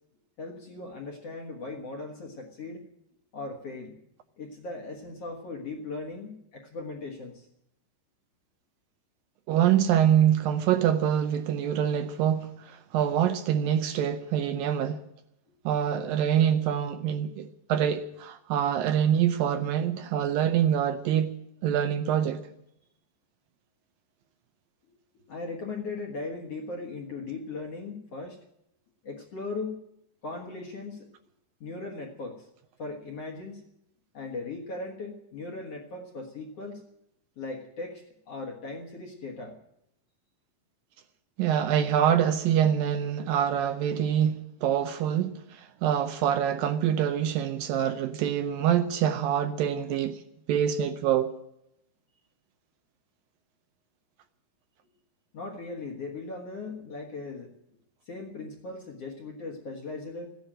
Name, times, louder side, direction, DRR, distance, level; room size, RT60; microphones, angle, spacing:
voice 1, 0.4-2.8 3.3-4.0 4.4-7.5 15.5-15.6 24.9-28.4 29.0-29.8 30.2-31.1 31.6-32.5 32.8-33.6 34.1-36.8 37.4-39.6 55.3-57.8 58.1-60.4, left 3 dB, 55° left, 1.9 m, -38 dB
voice 2, 9.5-15.0 15.7-21.3 21.6-22.4 41.4-50.2 50.5-51.3, right 9 dB, 75° right, 2.2 m, -25 dB
15.5 x 10.5 x 8.8 m
omnidirectional pair, 4.5 m